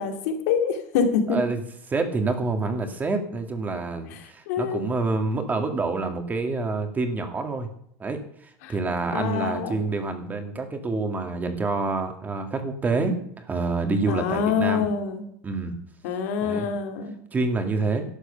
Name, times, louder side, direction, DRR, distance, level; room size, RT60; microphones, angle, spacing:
voice 1, 0.0-1.4 4.1-4.9 8.6-8.8 9.1-9.7 14.1-15.2 16.0-17.2, left 6 dB, 80° left, 5 dB, 2.5 m, -26 dB
voice 2, 1.3-1.6 1.9-7.7 8.0-8.2 8.7-14.9 15.4-15.7 16.4-16.7 17.3-18.1, right 3 dB, 20° right, 6 dB, 2.0 m, -27 dB
12.5 x 8.1 x 6.8 m, 0.70 s
supercardioid pair, 130°, 8 cm